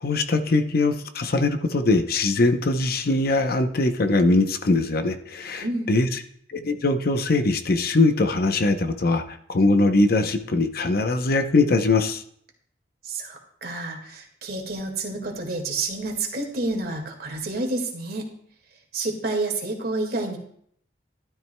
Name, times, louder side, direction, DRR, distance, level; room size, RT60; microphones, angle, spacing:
voice 1, 0.0-6.2 6.5-12.2, left 2 dB, 55° left, 8 dB, 0.7 m, -22 dB
voice 2, 13.0-18.3 18.9-20.4, right 2 dB, 60° right, 2 dB, 1.8 m, -29 dB
12.5 x 12.0 x 2.2 m, 0.66 s
head